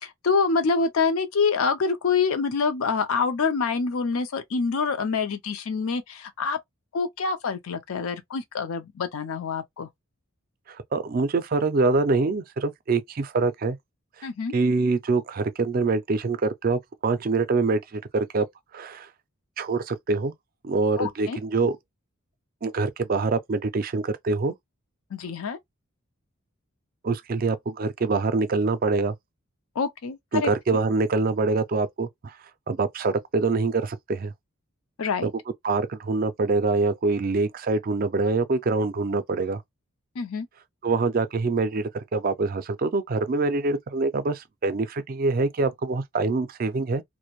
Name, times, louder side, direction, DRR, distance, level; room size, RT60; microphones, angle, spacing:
voice 1, 0.0-6.6 6.9-9.9 14.2-14.5 21.0-21.4 25.1-25.6 29.8-30.5 35.0-35.3 40.2-40.5, left 5 dB, 75° left, 0.5 m, -26 dB
voice 2, 10.7-13.8 14.2-14.3 14.5-18.5 18.7-19.1 19.6-20.3 20.6-21.7 22.6-24.5 27.0-29.2 30.3-32.4 32.7-34.3 35.2-35.3 35.6-39.6 40.8-47.0, right 3 dB, 40° right, 0.4 m, -25 dB
2.5 x 2.1 x 2.9 m
head